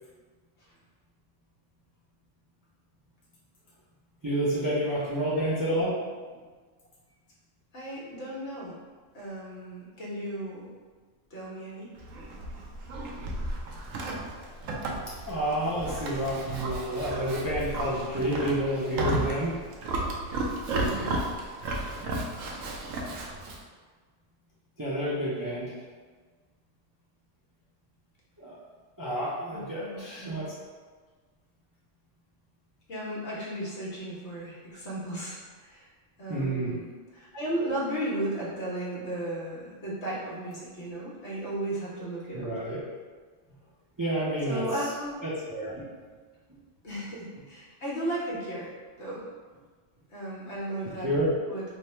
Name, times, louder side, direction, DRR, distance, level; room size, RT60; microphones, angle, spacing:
voice 1, 4.2-5.9 15.3-19.6 24.8-25.8 28.4-28.6 29.0-30.5 36.3-36.7 42.3-42.8 44.0-44.6 45.2-45.8 51.0-51.3, right 1 dB, 25° right, -8 dB, 0.4 m, -29 dB
voice 2, 7.7-8.7 9.1-10.7 11.3-11.9 20.7-21.2 29.5-30.4 32.9-35.9 36.2-36.9 37.1-42.5 44.5-45.2 45.8-45.9 46.8-48.7 49.0-49.3 50.1-51.1 51.5-51.6, right 1 dB, 60° left, -6 dB, 1.2 m, -35 dB
Livestock farm animals working animals, 12.0-23.6, right 2 dB, 90° right, 1.0 m, -33 dB
3.5 x 2.1 x 4.2 m, 1.5 s
omnidirectional pair, 1.3 m